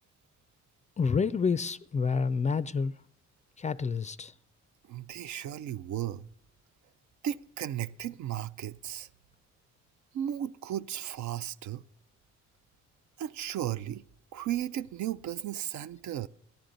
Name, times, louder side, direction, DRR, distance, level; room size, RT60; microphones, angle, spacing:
voice 1, 1.0-2.9 3.6-4.3, left 5 dB, 25° left, 0.4 m, -28 dB
voice 2, 4.9-6.3 7.2-9.1 10.1-11.8 13.2-14.0 14.3-16.3, right 11 dB, 70° right, 0.5 m, -35 dB
14.0 x 10.5 x 3.9 m
cardioid pair, 90°, 30 cm